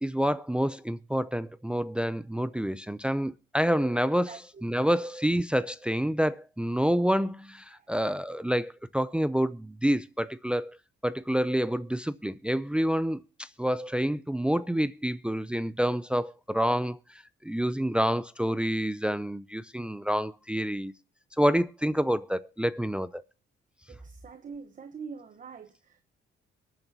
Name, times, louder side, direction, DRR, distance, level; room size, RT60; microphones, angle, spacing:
voice 1, 0.0-10.8 11.0-20.9 21.4-23.2, equal, 5° right, 0.5 m, -28 dB
voice 2, 4.3-4.6 7.7-7.9 23.9-26.0, right 5 dB, 40° right, 1.0 m, -44 dB
23.5 x 9.1 x 2.8 m
cardioid pair, 90°, 20 cm